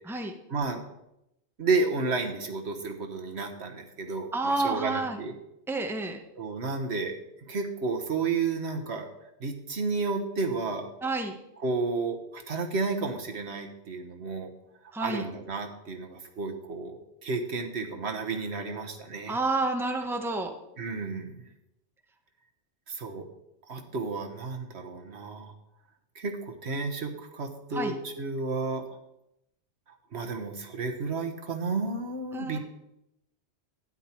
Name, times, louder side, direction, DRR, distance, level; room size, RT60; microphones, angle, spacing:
voice 1, 0.5-0.8 1.6-5.3 6.4-7.2 7.5-9.1 9.4-10.9 11.6-14.5 15.0-19.4 20.8-21.5 22.9-23.2 23.7-25.5 26.1-28.8 30.1-32.6, right 4 dB, 70° right, 4 dB, 1.5 m, -32 dB
voice 2, 4.3-5.2 5.7-6.2 11.0-11.4 14.9-15.2 19.3-20.5 27.7-28.0 32.3-32.6, right 2 dB, ahead, 4 dB, 1.0 m, -29 dB
12.5 x 9.8 x 4.5 m, 0.85 s
omnidirectional pair, 1.1 m